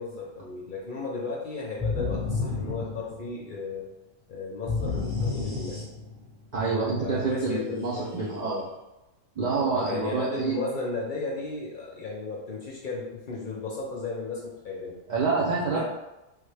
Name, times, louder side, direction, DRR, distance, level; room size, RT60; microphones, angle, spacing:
voice 1, 0.0-3.9 4.3-5.8 7.0-8.7 9.5-15.0 15.7-15.8, left 3 dB, 55° left, -3 dB, 0.6 m, -35 dB
sound 1, 1.8-3.5 4.7-6.3, left 4 dB, 15° right, 1.0 m, -30 dB
voice 2, 6.5-8.6 9.4-10.5 15.1-15.8, right 4 dB, 60° right, -6 dB, 0.4 m, -27 dB
3.3 x 2.2 x 3.2 m, 0.98 s
omnidirectional pair, 1.3 m